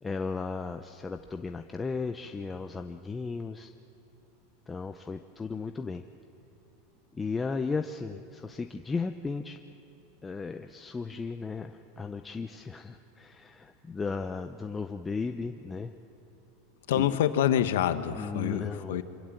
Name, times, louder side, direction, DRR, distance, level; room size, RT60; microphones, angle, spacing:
voice 1, 0.0-3.7 4.7-6.0 7.1-9.6 10.2-15.9 16.9-17.2 18.2-19.0, left 4 dB, 10° left, 6 dB, 0.5 m, -35 dB
voice 2, 16.9-19.0, left 10 dB, 80° left, 10 dB, 1.4 m, -26 dB
27.0 x 25.0 x 7.6 m, 2.9 s
supercardioid pair, 170°, 0 cm